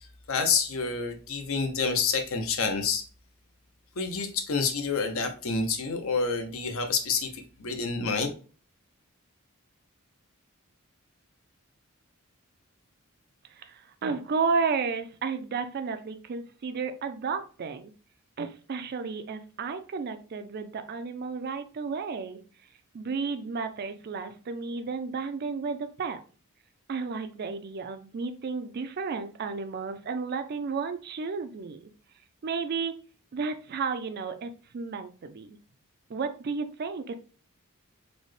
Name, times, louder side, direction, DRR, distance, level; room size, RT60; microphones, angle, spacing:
voice 1, 0.3-3.0 4.0-8.3, left 5 dB, 65° left, 6 dB, 0.6 m, -28 dB
voice 2, 13.5-17.9 18.4-22.4 22.9-26.2 26.9-31.9 32.4-33.0 33.3-35.6 36.1-37.2, right 5 dB, 45° right, 9 dB, 0.4 m, -32 dB
4.0 x 2.1 x 3.1 m, 0.38 s
head